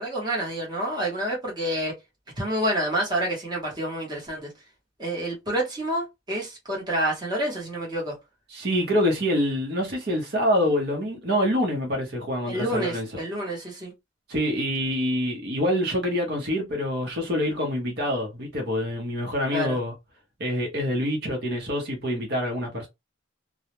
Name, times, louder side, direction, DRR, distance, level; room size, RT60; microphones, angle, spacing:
voice 1, 0.0-1.9 2.4-4.5 5.0-8.1 12.5-13.9 19.5-19.8, right 1 dB, 20° right, 0.9 m, -28 dB
voice 2, 8.5-13.1 14.3-19.9 20.4-22.9, equal, 55° right, 0.8 m, -26 dB
2.3 x 2.0 x 2.9 m
head